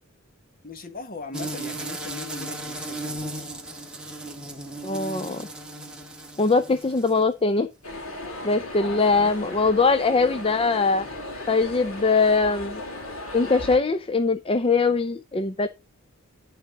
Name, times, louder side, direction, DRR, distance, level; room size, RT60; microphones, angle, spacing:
voice 1, 0.6-3.4 8.7-9.6, left 3 dB, 45° left, 1.4 m, -40 dB
sound 1, 1.3-7.3, right 1 dB, 5° right, 1.6 m, -36 dB
voice 2, 4.8-5.4 6.4-7.7 8.4-11.1 11.5-12.8 13.3-15.7, left 4 dB, 25° left, 0.5 m, -22 dB
sound 2, 7.8-13.8, left 1 dB, 90° left, 2.8 m, -36 dB
11.0 x 4.2 x 5.2 m
head